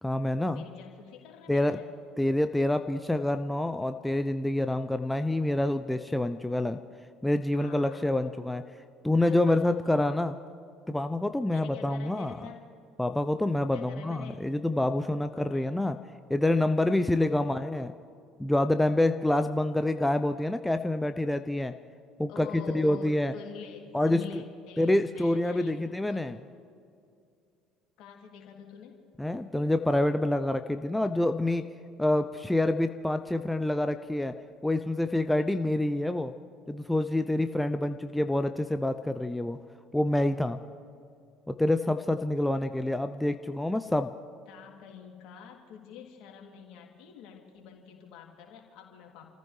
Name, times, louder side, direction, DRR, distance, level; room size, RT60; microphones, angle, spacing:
voice 1, 0.0-0.6 1.5-1.8 2.2-6.8 7.2-8.6 9.0-10.4 10.9-12.5 13.0-16.0 16.3-17.9 18.4-21.7 22.2-23.3 23.9-24.4 24.8-26.4 29.2-31.7 32.0-34.3 34.6-36.3 36.7-39.6 39.9-40.6 41.5-44.1, left 1 dB, 5° left, 8 dB, 0.6 m, -27 dB
voice 2, 0.5-2.1 7.5-8.0 9.1-10.2 11.5-12.6 13.7-14.4 15.3-15.9 17.1-17.4 22.3-26.3 28.0-29.0 43.8-43.9 44.5-49.3, left 6 dB, 55° left, 0 dB, 2.9 m, -47 dB
30.0 x 14.5 x 3.3 m, 2.4 s
figure-of-eight pair, 60°, 0 cm